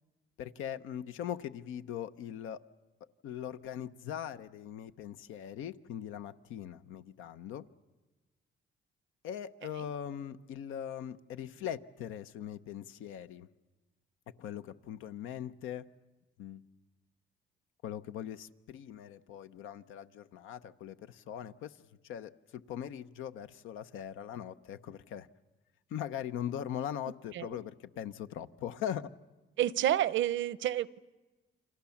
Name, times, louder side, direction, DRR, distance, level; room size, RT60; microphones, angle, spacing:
voice 1, 0.4-2.6 3.2-7.7 9.2-13.5 14.4-15.9 16.4-16.6 17.8-21.8 22.0-25.3 25.9-29.1, left 10 dB, 90° left, 11 dB, 0.9 m, -40 dB
voice 2, 29.6-31.0, right 12 dB, 75° right, 20 dB, 0.8 m, -29 dB
29.5 x 25.0 x 7.2 m, 1.2 s
cardioid pair, 90°, 20 cm